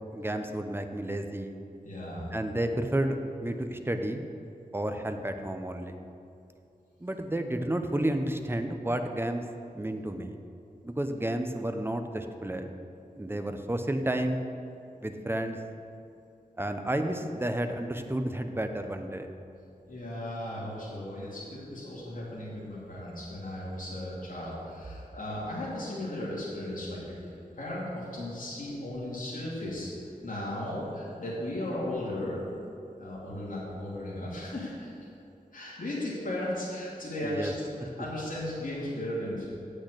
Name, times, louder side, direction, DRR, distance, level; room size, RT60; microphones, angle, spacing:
voice 1, 0.1-1.6 2.3-4.2 4.7-6.0 7.0-9.4 9.7-10.4 10.8-12.7 13.2-14.5 15.0-15.6 16.6-19.3 37.2-37.5, right 1 dB, 15° right, 6 dB, 0.8 m, -31 dB
voice 2, 1.8-2.3 19.9-29.9 30.2-32.4 33.0-34.9 35.5-39.4, left 1 dB, 65° left, -8 dB, 2.6 m, -36 dB
8.2 x 6.6 x 7.9 m, 2.7 s
wide cardioid pair, 70°, 15 cm